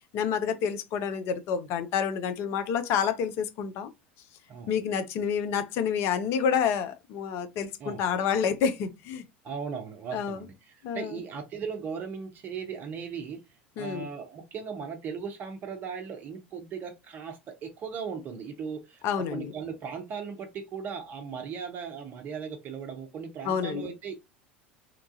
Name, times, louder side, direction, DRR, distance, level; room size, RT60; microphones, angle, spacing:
voice 1, 0.1-3.9 4.7-9.2 10.1-10.4 10.8-11.2 13.8-14.1 19.0-19.5 23.4-23.9, left 7 dB, 45° left, 0.5 m, -28 dB
voice 2, 9.4-13.4 13.8-24.1, right 6 dB, 35° right, 0.6 m, -38 dB
2.9 x 2.3 x 2.6 m
figure-of-eight pair, 75°, 6 cm